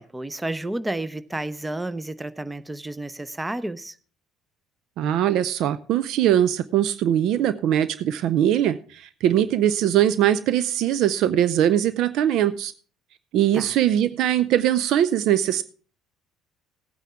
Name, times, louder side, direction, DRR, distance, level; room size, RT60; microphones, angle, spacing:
voice 1, 0.0-3.9 13.5-13.7, right 1 dB, 10° right, 15 dB, 0.7 m, -31 dB
voice 2, 5.0-12.7 13.3-15.6, right 11 dB, 60° right, 15 dB, 0.5 m, -21 dB
16.5 x 9.1 x 3.6 m, 0.41 s
figure-of-eight pair, 55°, 0 cm